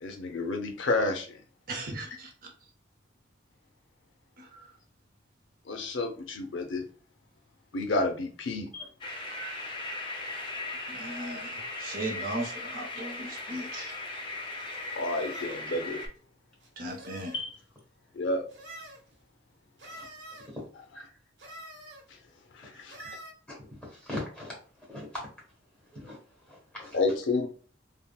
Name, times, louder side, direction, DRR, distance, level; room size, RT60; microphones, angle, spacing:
voice 1, 0.0-1.3 5.7-6.8 7.7-8.7 15.0-16.0 17.3-17.5 18.1-18.4 22.5-23.0 26.9-27.5, left 2 dB, 75° left, 5 dB, 0.6 m, -30 dB
voice 2, 1.7-2.5 4.4-4.7 10.9-14.0 15.7-15.8 16.8-17.4, right 1 dB, 50° right, 3 dB, 0.6 m, -37 dB
sound 1, 9.0-16.1, left 2 dB, 25° left, 0.5 m, -38 dB
sound 2, 13.7-13.9 14.6-15.6 16.6-17.4 18.5-19.0 19.8-20.5 21.4-22.0 22.9-23.3, right 1 dB, 75° right, 1.0 m, -47 dB
voice 3, 23.8-24.6 24.9-25.3 25.9-26.2 26.5-27.0, left 1 dB, 5° left, -4 dB, 1.2 m, -40 dB
3.6 x 2.0 x 2.3 m, 0.41 s
head